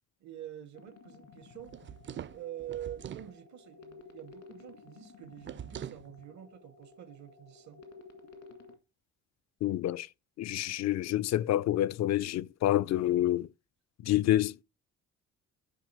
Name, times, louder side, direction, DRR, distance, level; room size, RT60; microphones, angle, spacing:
voice 1, 0.2-1.8 2.3-7.9, right 11 dB, 70° right, 1.0 m, -46 dB
sound 1, 0.7-8.7, left 4 dB, 80° left, 2.0 m, -54 dB
sound 2, 1.7-3.3 5.4-6.1, right 10 dB, 40° right, 0.4 m, -43 dB
voice 2, 9.6-10.1 10.4-13.5 14.0-14.6, left 13 dB, 60° left, 0.5 m, -28 dB
11.5 x 4.9 x 4.6 m
cardioid pair, 90°, 30 cm